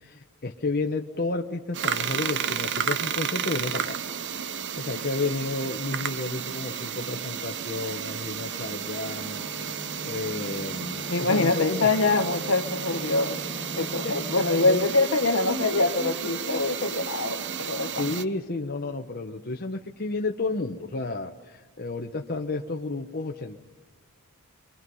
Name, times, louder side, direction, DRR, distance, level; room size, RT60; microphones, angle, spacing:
voice 1, 0.0-4.0 4.3-9.8 10.0-11.9 14.0-14.2 14.6-14.9 18.0-23.6, left 3 dB, 45° left, 2 dB, 1.0 m, -32 dB
sound 1, 1.7-18.2, right 8 dB, 50° right, 0.7 m, -32 dB
sound 2, 8.1-14.8, left 1 dB, 20° left, 1.3 m, -41 dB
voice 2, 11.1-13.4 13.7-18.1, left 3 dB, 60° left, 9 dB, 1.3 m, -24 dB
sound 3, 15.5-18.4, left 1 dB, 80° right, 6.2 m, -39 dB
24.5 x 24.5 x 5.5 m, 1.3 s
head